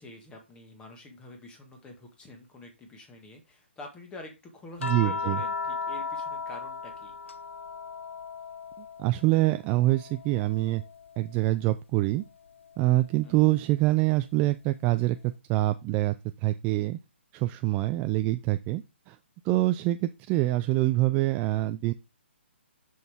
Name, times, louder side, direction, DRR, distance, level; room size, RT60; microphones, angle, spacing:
voice 1, 0.0-7.4 13.2-13.6, left 2 dB, 15° left, 4 dB, 1.7 m, -47 dB
sound 1, 4.8-9.3 9.6-11.3 12.8-13.0, left 4 dB, 80° left, 0.6 m, -36 dB
voice 2, 4.8-5.4 9.0-10.8 11.2-12.2 12.8-15.2 15.5-16.1 16.4-17.0 17.3-19.2 19.5-21.9, right 17 dB, 20° right, 10 dB, 0.4 m, -25 dB
6.7 x 6.3 x 3.6 m, 0.26 s
hypercardioid pair, 145°, 7 cm